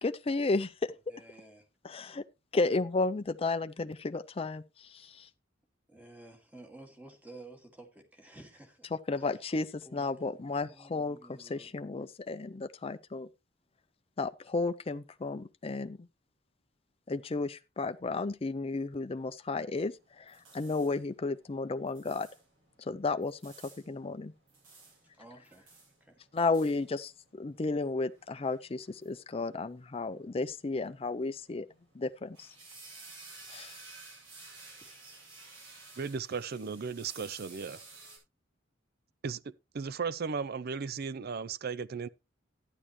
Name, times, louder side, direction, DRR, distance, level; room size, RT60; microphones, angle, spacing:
voice 1, 0.0-0.9 1.8-2.2 2.5-5.3 9.1-13.3 14.2-16.0 17.1-22.3 22.9-23.5 23.9-24.3 26.3-27.1 27.4-31.7 32.0-32.5 33.5-33.7, left 3 dB, 30° left, 0.5 m, -33 dB
voice 2, 1.1-1.7 5.9-9.5 9.8-11.7 25.1-26.2, right 2 dB, 10° right, 2.1 m, -53 dB
sound 1, 19.9-38.2, right 3 dB, 75° right, 7.5 m, -54 dB
voice 3, 36.0-37.8 39.2-42.1, right 5 dB, 55° right, 0.5 m, -36 dB
12.0 x 9.9 x 3.1 m
head